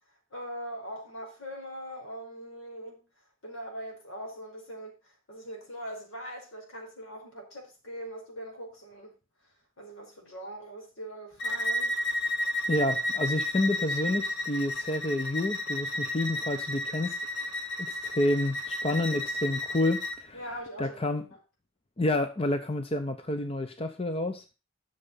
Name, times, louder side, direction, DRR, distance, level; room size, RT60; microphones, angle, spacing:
voice 1, 0.3-9.1 9.8-12.0 20.3-21.4, equal, 75° left, 4.7 m, -42 dB
Bowed string instrument, 11.4-20.2, left 1 dB, 60° left, 1.5 m, -32 dB
voice 2, 12.7-17.2 17.9-20.4 20.8-21.2 22.0-24.4, left 1 dB, 30° left, 0.7 m, -29 dB
11.5 x 6.7 x 5.5 m
head